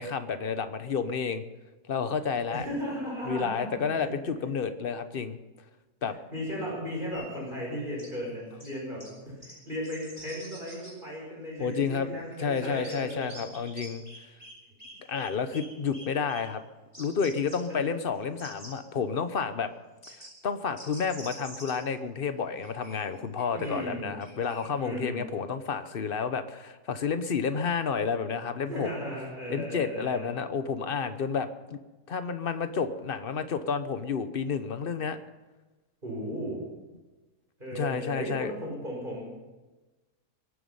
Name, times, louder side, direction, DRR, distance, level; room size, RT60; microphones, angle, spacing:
voice 1, 0.0-1.4 1.9-2.7 3.2-5.4 6.0-6.1 11.6-14.0 15.1-16.6 17.0-19.7 20.4-28.9 29.5-31.8 32.1-35.2 37.7-38.5, left 6 dB, 40° left, 10 dB, 0.9 m, -30 dB
voice 2, 2.5-4.1 6.3-13.3 17.7-17.9 23.5-24.1 24.8-25.3 28.7-30.3 36.0-36.6 37.6-39.2, equal, 30° right, -3 dB, 5.4 m, -36 dB
sound 1, 7.1-7.2 8.0-8.1 8.6-8.7 9.0-9.1 9.4-9.5 9.8-10.9 11.6-11.7 12.0-14.5 14.8-15.7 15.9-16.4 16.9-17.6 18.1-18.7 20.0-20.3 20.8-21.7 22.6-23.8 24.2-24.7, equal, 10° right, 5.0 m, -46 dB
22.5 x 9.6 x 5.5 m, 1.2 s
omnidirectional pair, 1.7 m